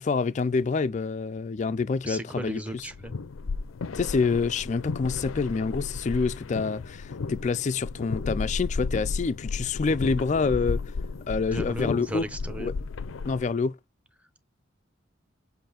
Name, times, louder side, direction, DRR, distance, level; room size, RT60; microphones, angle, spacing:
voice 1, 0.0-2.9 3.9-10.8 11.3-12.2 12.6-12.7 13.2-13.8, left 4 dB, 35° left, 0.3 m, -27 dB
voice 2, 2.0-3.2 11.5-12.7, right 1 dB, 5° right, 0.9 m, -35 dB
sound 1, 2.7-13.5, left 4 dB, 90° left, 0.5 m, -33 dB
7.8 x 2.6 x 5.0 m
head